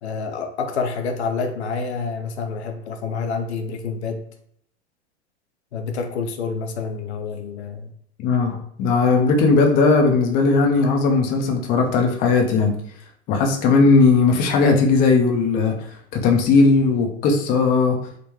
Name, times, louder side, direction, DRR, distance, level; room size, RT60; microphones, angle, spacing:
voice 1, 0.0-4.2 5.7-7.9, left 5 dB, 70° left, 5 dB, 0.6 m, -28 dB
voice 2, 8.2-12.8 13.3-15.7 16.1-18.0, left 4 dB, 25° left, 2 dB, 0.5 m, -17 dB
3.6 x 2.2 x 2.9 m, 0.67 s
hypercardioid pair, 100°, 34 cm